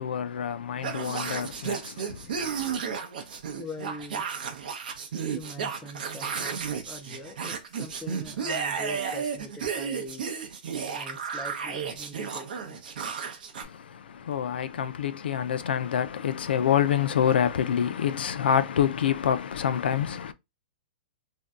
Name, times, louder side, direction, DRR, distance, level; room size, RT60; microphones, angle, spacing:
voice 1, 0.0-2.5 13.6-20.3, left 9 dB, 75° left, 0.4 m, -27 dB
sound 1, 0.8-13.6, right 6 dB, 60° right, 0.7 m, -33 dB
voice 2, 3.6-4.3 5.3-10.2 10.5-10.6 10.9-12.8, equal, 5° left, 0.4 m, -42 dB
2.6 x 2.2 x 3.5 m
hypercardioid pair, 175°, 5 cm